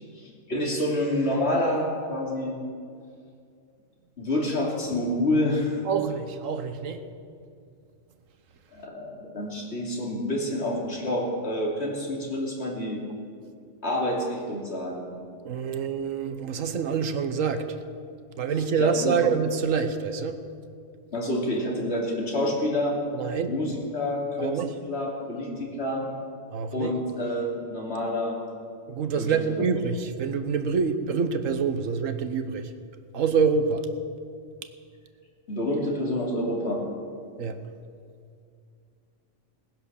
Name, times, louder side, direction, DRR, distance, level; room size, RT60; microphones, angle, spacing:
voice 1, 0.2-2.6 4.2-5.8 8.7-13.0 13.8-15.1 18.8-19.2 21.1-23.0 23.5-24.6 24.9-26.0 26.7-28.4 29.2-29.4 35.5-36.8, left 1 dB, 55° left, -2 dB, 3.1 m, -28 dB
voice 2, 5.9-7.1 15.4-17.8 18.4-20.4 23.1-23.5 24.4-24.7 26.5-26.9 28.9-32.7 33.1-33.9 37.4-37.6, right 6 dB, 80° right, 9 dB, 1.3 m, -26 dB
18.5 x 10.5 x 7.0 m, 2.3 s
omnidirectional pair, 1.3 m